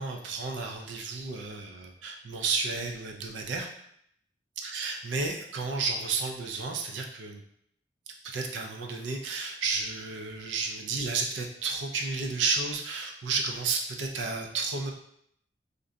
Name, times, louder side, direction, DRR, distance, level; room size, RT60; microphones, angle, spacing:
voice 1, 0.0-3.7 4.6-7.4 8.2-14.9, right 4 dB, 80° right, 2 dB, 0.4 m, -32 dB
2.5 x 2.2 x 3.7 m, 0.72 s
head